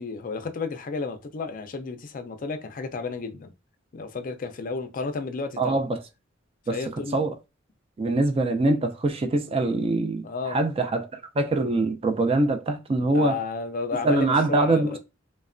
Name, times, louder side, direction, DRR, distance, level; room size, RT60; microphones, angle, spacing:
voice 1, 0.0-3.5 3.9-5.8 6.7-7.2 10.2-10.6 13.1-15.0, left 4 dB, 45° left, 0.4 m, -32 dB
voice 2, 5.6-6.0 6.7-6.8 7.1-7.3 8.0-13.4 14.0-15.0, right 2 dB, 30° right, 0.4 m, -23 dB
3.1 x 2.1 x 2.4 m
head